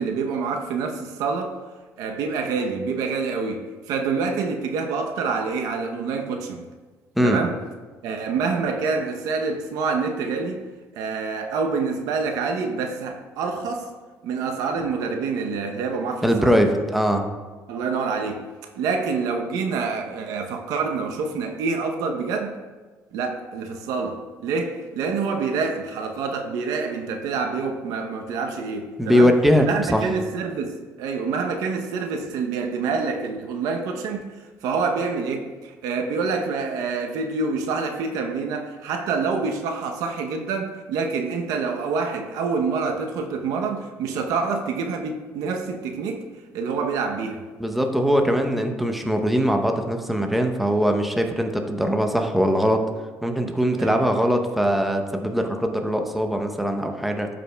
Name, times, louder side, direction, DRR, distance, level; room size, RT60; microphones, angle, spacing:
voice 1, 0.0-1.6 2.0-6.7 7.2-7.6 8.0-10.6 11.0-13.9 14.2-16.5 17.7-18.4 18.8-22.6 23.1-29.3 29.6-34.3 34.6-46.3 46.5-47.4 53.8-54.0, right 4 dB, 80° right, 0.7 m, -27 dB
voice 2, 16.2-17.2 29.0-30.0 47.6-52.8 53.2-57.3, equal, ahead, 0.7 m, -21 dB
12.5 x 5.1 x 2.2 m
cardioid pair, 110°, 6 cm